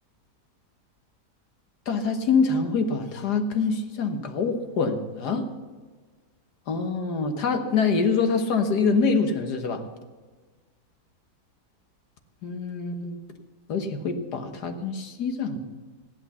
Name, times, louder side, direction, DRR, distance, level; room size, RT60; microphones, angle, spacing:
voice 1, 1.9-5.5 6.7-9.9 12.4-13.2 13.7-15.6, left 4 dB, 75° left, 6 dB, 1.8 m, -25 dB
15.0 x 11.0 x 7.0 m, 1.4 s
omnidirectional pair, 1.8 m